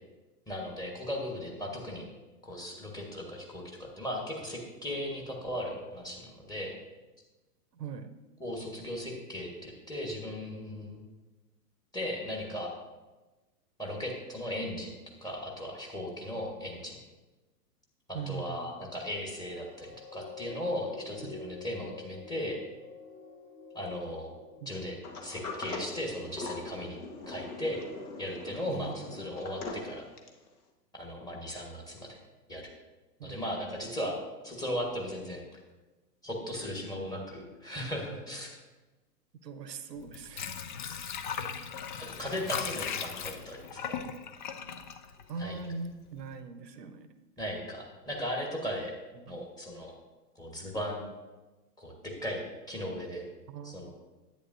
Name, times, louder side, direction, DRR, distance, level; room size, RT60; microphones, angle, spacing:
voice 1, 0.5-2.1 2.4-6.7 8.4-11.0 11.9-12.7 13.8-17.0 18.3-22.6 23.7-24.3 24.7-25.0 25.2-27.8 28.2-30.0 31.0-32.2 32.5-32.7 33.2-34.1 34.4-35.4 36.2-38.6 40.9-41.1 42.0-44.0 45.4-45.6 47.4-48.9 49.3-49.9 50.3-51.1 51.8-53.3 53.6-53.9, equal, 10° left, 0 dB, 1.3 m, -37 dB
voice 2, 7.7-8.1 18.1-18.7 21.2-21.4 24.6-24.7 28.7-29.2 33.2-33.4 39.4-40.6 45.3-47.1 49.2-49.4 53.5-53.9, right 5 dB, 80° right, 11 dB, 0.8 m, -41 dB
sound 1, 19.2-25.9 26.5-26.6, left 4 dB, 85° left, 1.3 m, -48 dB
Sliding door, 25.0-30.5, left 3 dB, 65° left, 1.5 m, -41 dB
Water / Sink (filling or washing), 40.0-45.8 46.2-46.3, left 7 dB, 35° left, 0.4 m, -38 dB
10.5 x 8.6 x 2.6 m, 1.2 s
figure-of-eight pair, 110°, 48 cm